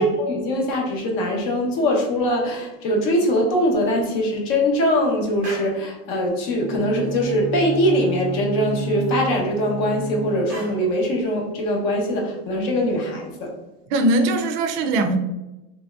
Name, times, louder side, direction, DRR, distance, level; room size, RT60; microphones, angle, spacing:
voice 1, 0.0-13.5, equal, 45° left, 0 dB, 0.8 m, -22 dB
sound 1, 3.8-3.9 4.1-4.7 5.2-6.1 6.4-6.5 6.7-7.5 7.8-7.9 8.2-8.3 9.0-10.0 10.5-10.9, right 1 dB, 5° right, 1.0 m, -40 dB
Bowed string instrument, 6.5-10.8, right 3 dB, 60° left, 1.2 m, -31 dB
voice 2, 13.9-15.2, right 2 dB, 50° right, 7 dB, 0.5 m, -20 dB
3.1 x 2.7 x 2.3 m, 1.0 s
supercardioid pair, 165°, 30 cm